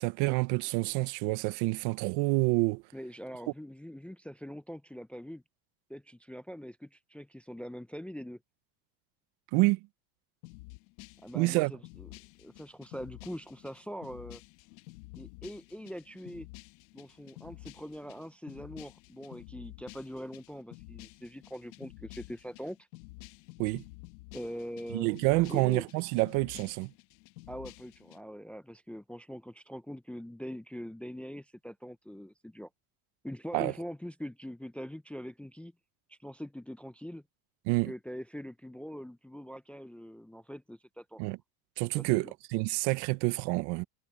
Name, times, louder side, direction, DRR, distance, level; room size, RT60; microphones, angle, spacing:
voice 1, 0.0-2.8 9.5-9.8 11.3-11.7 23.6-23.8 24.9-26.9 33.5-33.7 37.7-37.9 41.2-41.4 41.8-43.8, right 24 dB, 70° right, 1.0 m, -28 dB
voice 2, 2.9-5.4 5.9-8.4 11.2-12.1 12.4-14.4 15.2-16.5 16.9-22.8 24.3-25.1 25.5-25.9 27.5-32.7 33.2-35.7 36.1-37.2 37.9-41.2 42.0-42.3, equal, 5° left, 0.5 m, -43 dB
sound 1, 10.4-28.2, left 22 dB, 85° left, 1.4 m, -51 dB
supercardioid pair, 125°, 41 cm